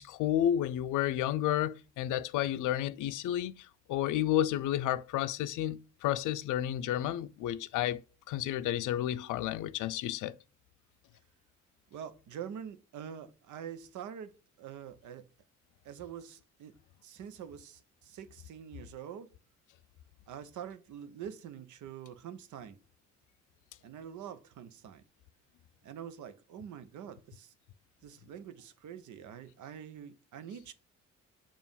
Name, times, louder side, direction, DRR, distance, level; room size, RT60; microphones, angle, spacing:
voice 1, 0.0-10.4, left 12 dB, 85° left, 0.5 m, -31 dB
voice 2, 11.9-15.3 15.8-16.8 17.0-19.3 20.3-22.8 23.8-25.0 25.8-27.5 28.0-30.7, right 8 dB, 75° right, 0.8 m, -45 dB
7.1 x 2.5 x 5.4 m
cardioid pair, 90°, 30 cm